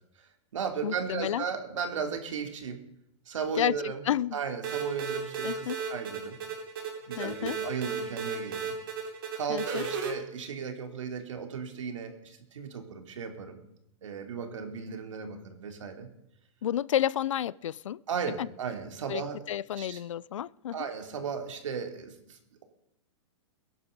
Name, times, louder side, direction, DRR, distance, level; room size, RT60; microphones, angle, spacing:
voice 1, 0.2-2.8 3.3-4.0 4.3-6.4 7.1-8.7 9.3-13.6 14.0-16.1 18.1-19.4 19.8-20.0 20.7-22.6, right 6 dB, 80° right, 3.4 m, -35 dB
voice 2, 0.8-1.4 3.6-3.7 4.1-4.4 5.4-5.8 7.2-7.6 9.5-9.8 16.6-18.0 18.4-18.5 19.1-19.2 19.5-20.9, left 11 dB, 85° left, 0.6 m, -30 dB
sound 1, 4.6-10.1, right 5 dB, 45° right, 4.2 m, -35 dB
22.5 x 11.0 x 5.4 m
hypercardioid pair, 175°, 16 cm